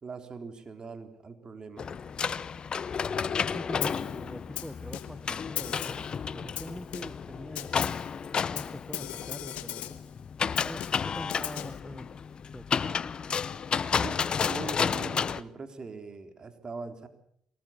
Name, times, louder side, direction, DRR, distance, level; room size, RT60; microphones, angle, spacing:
voice 1, 0.0-1.9 14.0-17.1, right 4 dB, 40° right, 7 dB, 3.7 m, -41 dB
sound 1, 1.8-15.4, left 6 dB, 45° left, 0.8 m, -32 dB
voice 2, 3.2-6.0 6.3-7.7 8.5-9.9 10.6-12.1 12.5-13.1, equal, ahead, 13 dB, 1.1 m, -43 dB
Snare drum, 3.8-4.1 4.6-5.3 5.6-6.1 6.6-7.3 7.6-8.1 8.6-10.1 10.6-11.8, left 13 dB, 75° left, 1.4 m, -38 dB
23.0 x 18.5 x 7.2 m, 0.68 s
hypercardioid pair, 55°, 2 cm